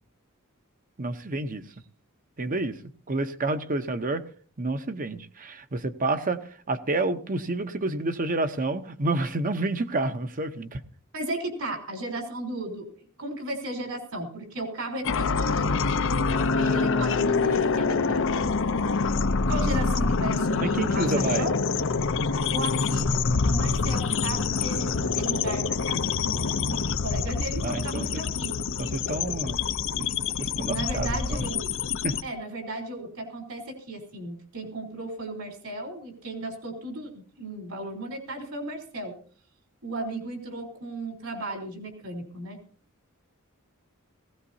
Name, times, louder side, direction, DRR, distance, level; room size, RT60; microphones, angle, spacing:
voice 1, 1.0-1.6 2.4-2.8 3.1-4.2 4.6-10.8 20.5-21.5 27.6-28.1 28.8-29.6 29.9-30.1 30.4-31.5 32.0-32.2, right 2 dB, 40° right, 0.8 m, -29 dB
voice 2, 11.1-12.9 13.2-16.0 16.3-18.4 19.5-21.6 22.5-28.6 30.0-30.2 30.7-31.7 32.2-39.2 39.8-42.6, right 1 dB, 70° right, 3.7 m, -35 dB
sound 1, 15.0-32.2, left 4 dB, 65° left, 0.7 m, -26 dB
19.0 x 17.0 x 2.7 m
head